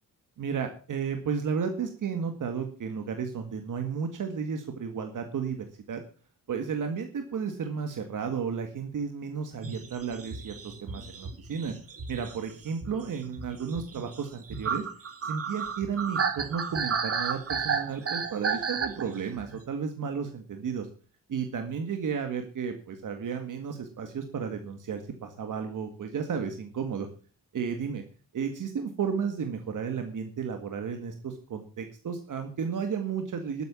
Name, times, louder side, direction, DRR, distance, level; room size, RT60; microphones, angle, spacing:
voice 1, 0.4-6.0 6.5-11.7 12.1-14.9 15.2-20.9 21.3-27.1 27.5-28.0 28.3-33.6, right 6 dB, 70° right, 6 dB, 1.9 m, -33 dB
sound 1, 9.6-19.6, right 6 dB, 45° right, 2.1 m, -33 dB
12.5 x 9.2 x 7.1 m, 0.39 s
wide cardioid pair, 150°, 33 cm